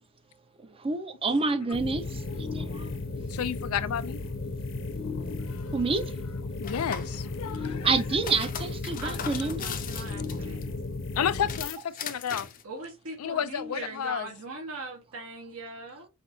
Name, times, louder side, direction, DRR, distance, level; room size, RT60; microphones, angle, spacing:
voice 1, 0.8-2.9 5.7-6.1 7.6-9.7, right 3 dB, 25° right, 0.5 m, -28 dB
sound 1, 1.7-11.8, left 3 dB, 65° left, 0.9 m, -35 dB
voice 2, 3.3-4.2 5.5-5.6 6.6-7.9 11.2-12.5 13.2-14.3, left 8 dB, 90° left, 0.4 m, -31 dB
sound 2, 6.6-7.2 8.0-10.6 11.4-12.6, left 8 dB, 40° left, 0.6 m, -38 dB
voice 3, 9.0-10.7 12.6-16.1, right 2 dB, 75° right, 1.4 m, -40 dB
5.7 x 2.7 x 2.7 m
head